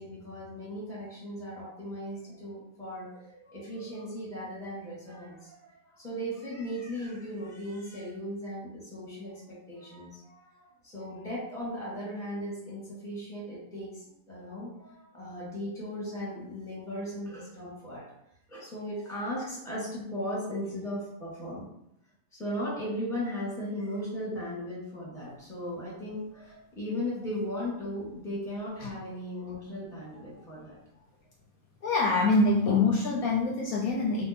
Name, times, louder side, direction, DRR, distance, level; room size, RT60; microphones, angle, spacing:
voice 1, 0.0-18.0 18.5-21.6 22.3-30.8, equal, ahead, -6 dB, 0.9 m, -37 dB
voice 2, 31.8-34.3, left 3 dB, 70° left, -2 dB, 0.9 m, -25 dB
2.8 x 2.3 x 4.0 m, 0.79 s
omnidirectional pair, 1.8 m